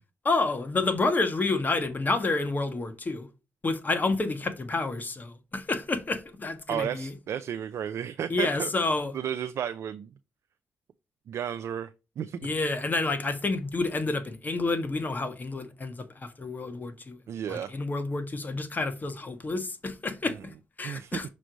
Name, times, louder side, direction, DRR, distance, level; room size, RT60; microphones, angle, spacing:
voice 1, 0.2-3.3 3.6-7.1 8.3-9.1 12.4-17.2 17.5-21.3, left 3 dB, 35° left, 1.4 m, -29 dB
voice 2, 6.7-8.7 9.1-10.1 11.3-11.9 12.2-12.5 17.3-17.7 20.8-21.2, right 9 dB, 70° right, 0.5 m, -33 dB
6.1 x 3.2 x 5.1 m
supercardioid pair, 55°, 5 cm